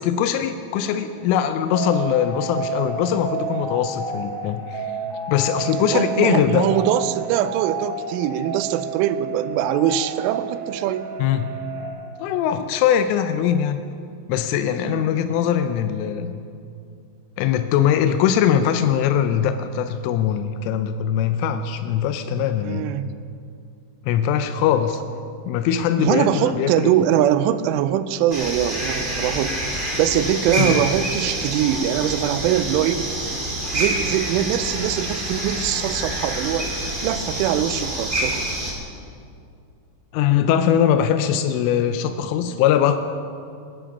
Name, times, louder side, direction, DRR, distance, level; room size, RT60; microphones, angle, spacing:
voice 1, 0.0-4.9 5.3-6.7 11.2-11.5 12.2-13.8 14.3-16.3 17.4-22.9 24.1-25.0 25.5-26.9 30.6-30.8 40.1-43.0, left 9 dB, 90° left, 8 dB, 3.2 m, -21 dB
sound 1, 1.7-11.9, right 4 dB, 50° right, 3.5 m, -31 dB
voice 2, 5.9-11.1 14.8-15.0 22.6-23.2 26.0-33.4 33.7-36.7 37.0-38.5, right 11 dB, 85° right, 13 dB, 3.0 m, -22 dB
sound 2, 28.3-38.7, right 1 dB, 25° right, 1.2 m, -27 dB
20.0 x 10.0 x 5.3 m, 2.4 s
omnidirectional pair, 5.6 m